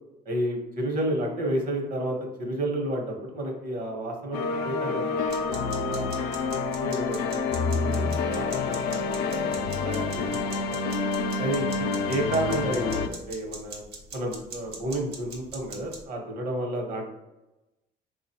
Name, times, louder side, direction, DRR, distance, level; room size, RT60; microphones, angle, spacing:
voice 1, 0.2-6.1 6.6-10.8 11.4-13.8 14.1-17.1, right 1 dB, 55° right, 1 dB, 1.1 m, -31 dB
sound 1, 4.3-13.1, left 4 dB, 85° left, 0.4 m, -28 dB
sound 2, 5.2-16.0, right 3 dB, 80° right, 1.0 m, -44 dB
4.0 x 2.4 x 2.8 m, 0.99 s
cardioid pair, 110°, 17 cm